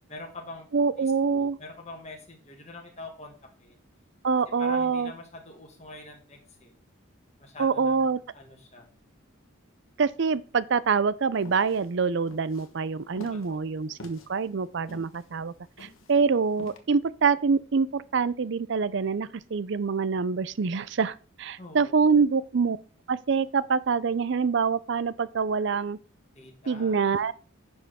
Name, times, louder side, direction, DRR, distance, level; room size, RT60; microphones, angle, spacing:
voice 1, 0.1-0.7 1.0-3.3 3.6-3.8 4.6-6.8 7.4-8.9 13.3-14.0 21.6-22.0 26.3-27.0, left 2 dB, 30° left, 1.8 m, -45 dB
voice 2, 0.7-1.6 4.2-5.1 7.6-8.2 10.0-22.8 23.1-26.0 26.7-27.3, right 5 dB, 55° right, 0.5 m, -25 dB
sound 1, 11.4-16.8, left 3 dB, 75° left, 1.2 m, -47 dB
10.0 x 6.1 x 3.6 m
head